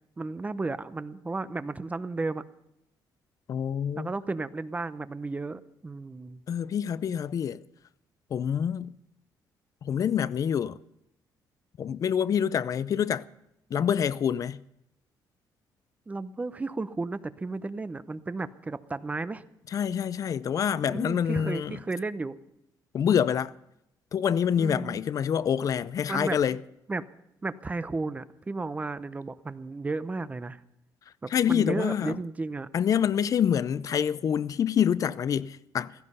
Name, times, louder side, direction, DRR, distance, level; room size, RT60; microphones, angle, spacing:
voice 1, 0.2-2.4 4.0-6.4 16.1-19.4 20.9-22.4 24.6-25.0 26.1-26.6 26.9-27.1 27.4-30.6 31.2-32.7, right 3 dB, 20° right, 0.7 m, -33 dB
voice 2, 3.5-4.1 6.5-7.6 8.3-8.9 9.8-10.8 11.8-13.2 13.7-14.6 19.7-21.8 22.9-23.5 24.1-26.6 31.3-32.2 32.7-36.1, left 8 dB, 50° left, 0.5 m, -26 dB
16.5 x 15.0 x 5.5 m
cardioid pair, 115°, 8 cm